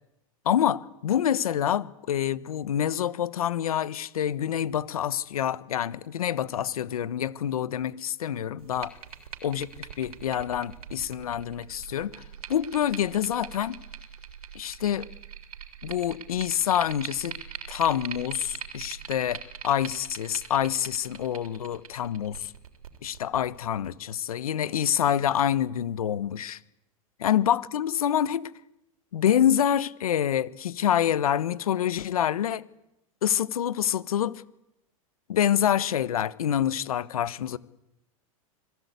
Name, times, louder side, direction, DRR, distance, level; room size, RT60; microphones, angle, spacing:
voice 1, 0.4-8.9 9.4-12.2 12.5-13.8 14.5-15.1 15.8-17.4 17.7-22.5 23.0-26.6 27.2-28.5 29.1-32.6 33.2-34.4 35.3-37.6, left 10 dB, 85° left, 1.3 m, -27 dB
sound 1, 8.6-23.9, right 9 dB, 85° right, 3.4 m, -43 dB
26.5 x 20.0 x 8.3 m
hypercardioid pair, 110°, 18 cm